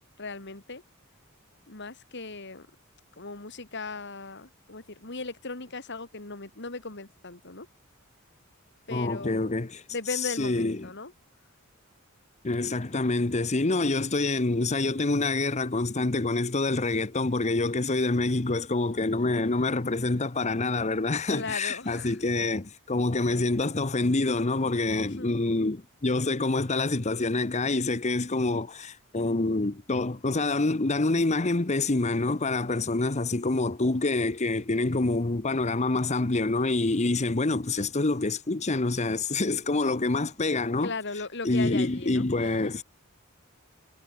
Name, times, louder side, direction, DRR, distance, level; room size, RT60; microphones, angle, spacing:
voice 1, 0.2-0.8 1.7-2.7 3.2-7.7 8.9-9.5 9.9-11.1 21.3-22.2 25.0-25.3 40.8-42.7, left 3 dB, 55° left, 3.0 m, -38 dB
voice 2, 8.9-9.8 10.1-10.9 12.4-40.9 41.4-42.8, left 2 dB, 35° left, 1.0 m, -26 dB
head